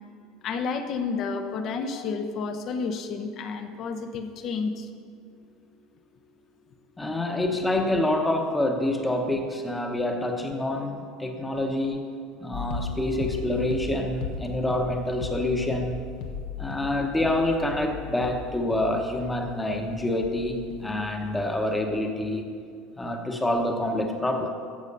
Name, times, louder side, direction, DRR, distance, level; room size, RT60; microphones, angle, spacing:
voice 1, 0.4-4.9, left 5 dB, 40° left, 8 dB, 0.8 m, -30 dB
voice 2, 7.0-12.0 12.4-16.1 16.6-22.5 23.0-24.5, left 1 dB, 10° left, 3 dB, 1.0 m, -27 dB
sound 1, 12.5-20.9 21.2-21.7, left 4 dB, 70° left, 1.2 m, -36 dB
15.0 x 6.4 x 5.5 m, 2.2 s
cardioid pair, 155°, 0 cm